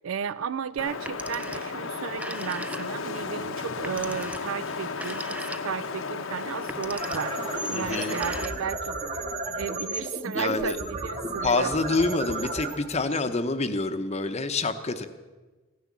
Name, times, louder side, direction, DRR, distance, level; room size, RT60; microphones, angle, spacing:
voice 1, 0.0-7.4 7.7-9.0 9.6-11.7, right 7 dB, 80° right, 0.4 m, -34 dB
Wind, 0.8-8.4, left 4 dB, 80° left, 0.9 m, -34 dB
Telephone, 0.9-1.8 2.1-3.2 3.8-5.9 6.6-7.4 7.8-8.9, right 1 dB, 5° right, 0.4 m, -39 dB
sound 1, 6.8-13.9, right 2 dB, 35° right, 1.6 m, -34 dB
voice 2, 7.7-8.2 10.3-10.8 11.4-15.1, left 3 dB, 30° left, 0.8 m, -27 dB
15.5 x 10.5 x 7.3 m
head